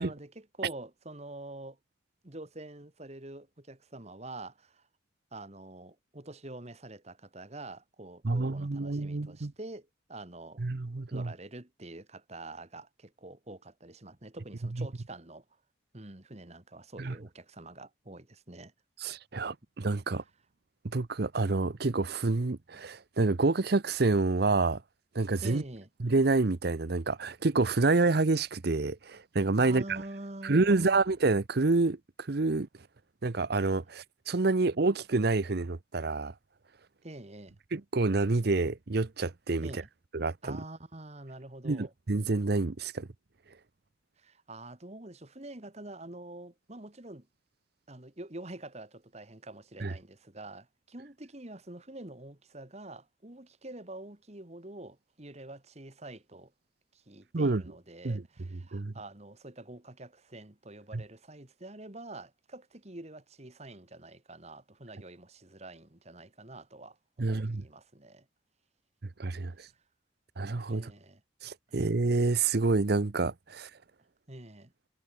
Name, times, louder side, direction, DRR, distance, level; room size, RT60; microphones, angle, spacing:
voice 1, 0.0-1.8 2.2-4.9 5.3-10.6 11.1-15.4 15.9-18.7 25.4-25.9 29.6-31.0 37.0-37.6 39.6-39.9 40.4-41.9 44.2-47.3 47.9-56.5 56.9-68.3 70.7-71.2 74.3-74.7, right 2 dB, 35° right, 1.8 m, -46 dB
voice 2, 8.2-9.5 10.6-11.3 14.8-14.9 17.0-17.1 19.0-20.2 20.8-24.8 25.1-25.6 26.0-30.0 30.4-32.7 33.2-36.3 37.7-39.8 40.1-40.6 41.6-43.1 49.8-49.9 57.3-57.6 58.0-58.2 58.7-58.9 67.2-67.6 69.2-69.7 70.4-70.9 71.4-73.7, right 3 dB, 55° right, 0.7 m, -28 dB
head